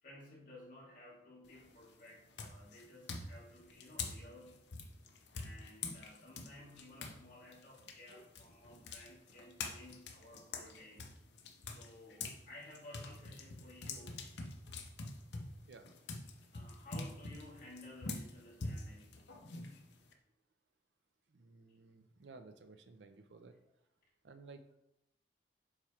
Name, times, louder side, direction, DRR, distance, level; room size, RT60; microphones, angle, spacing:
voice 1, 0.0-4.6 5.3-11.1 11.6-14.4 16.5-19.2, left 1 dB, 50° left, -6 dB, 2.1 m, -56 dB
sound 1, 1.4-1.8 2.3-7.2 7.5-12.4 12.7-20.1, left 3 dB, 75° left, 0.8 m, -45 dB
voice 2, 21.3-23.6 24.2-24.6, right 3 dB, 85° right, 9 dB, 0.6 m, -56 dB
7.5 x 3.2 x 4.5 m, 0.85 s
head